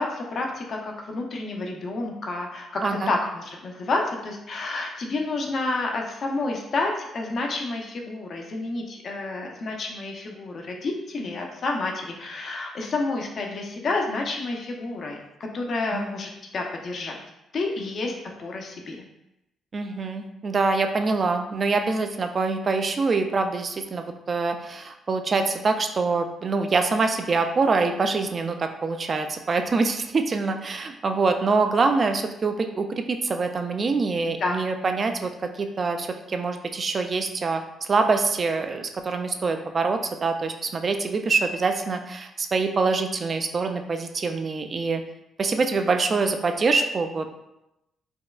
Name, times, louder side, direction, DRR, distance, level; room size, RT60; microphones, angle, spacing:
voice 1, 0.0-17.1 17.5-18.1 18.4-19.0 34.4-34.6, left 3 dB, 55° left, 1 dB, 0.6 m, -29 dB
voice 2, 19.7-35.3 35.6-45.0 45.4-47.4, right 4 dB, 40° right, 6 dB, 0.3 m, -25 dB
4.2 x 2.2 x 2.3 m, 0.89 s
cardioid pair, 90°, 0 cm